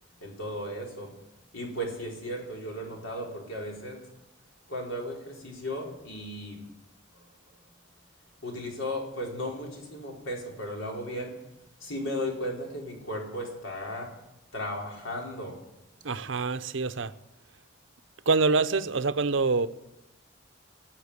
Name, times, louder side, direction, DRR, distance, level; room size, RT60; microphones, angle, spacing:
voice 1, 0.2-1.1 1.5-4.0 4.7-6.7 7.1-7.2 8.4-11.3 11.8-14.1 14.5-15.6, equal, 80° left, 4.2 m, -35 dB
voice 2, 16.0-17.1 18.3-19.7, right 4 dB, 65° right, 0.7 m, -25 dB
18.5 x 7.5 x 9.7 m
head